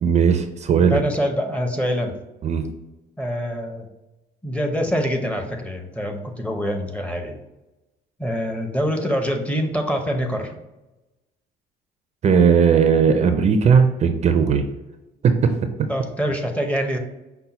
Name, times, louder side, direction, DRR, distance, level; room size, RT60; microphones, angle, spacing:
voice 1, 0.0-1.0 2.4-2.7 12.2-14.6 15.2-15.5, right 6 dB, 40° right, 7 dB, 0.4 m, -17 dB
voice 2, 0.8-2.1 3.2-3.9 4.4-7.4 8.2-10.6 15.9-17.0, equal, 10° left, 4 dB, 0.6 m, -25 dB
5.6 x 2.1 x 4.0 m, 1.0 s
cardioid pair, 110°, 17 cm